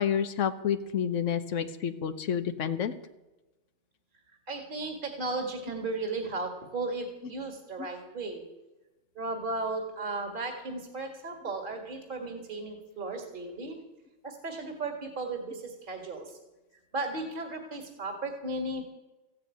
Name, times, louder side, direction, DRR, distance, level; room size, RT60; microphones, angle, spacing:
voice 1, 0.0-2.9 7.8-7.9, left 8 dB, 90° left, 9 dB, 1.2 m, -29 dB
voice 2, 4.5-8.4 9.2-13.8 14.2-16.3 16.9-18.8, right 2 dB, 45° right, 3 dB, 2.2 m, -35 dB
15.0 x 8.4 x 9.2 m, 1.1 s
omnidirectional pair, 1.3 m